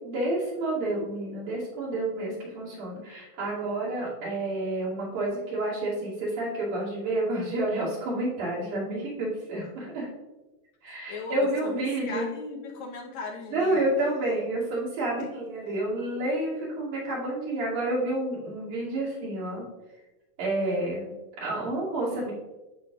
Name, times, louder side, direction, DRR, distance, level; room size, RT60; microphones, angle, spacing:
voice 1, 0.0-10.1 10.8-12.3 13.5-19.6 20.4-21.1 21.4-22.3, right 1 dB, 80° right, -7 dB, 4.1 m, -29 dB
voice 2, 10.8-13.8, left 4 dB, 70° left, 1 dB, 2.2 m, -38 dB
12.0 x 6.5 x 2.4 m, 1.1 s
omnidirectional pair, 3.5 m